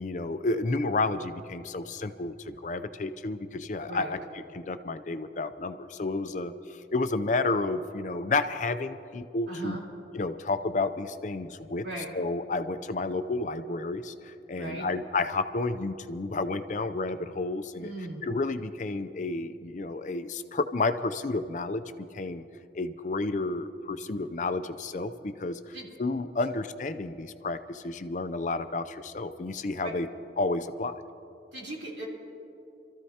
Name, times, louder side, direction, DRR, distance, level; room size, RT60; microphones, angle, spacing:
voice 1, 0.0-4.2 4.5-9.8 10.1-11.9 12.1-17.9 18.2-21.8 22.1-22.4 22.7-30.1 30.4-30.9, left 3 dB, 45° left, 10 dB, 0.5 m, -31 dB
voice 2, 9.5-9.8 11.8-12.1 14.6-14.9 17.8-18.3 25.7-25.9 29.8-29.9 31.5-32.1, right 2 dB, 85° right, -3 dB, 3.8 m, -38 dB
27.0 x 14.0 x 2.9 m, 2.7 s
head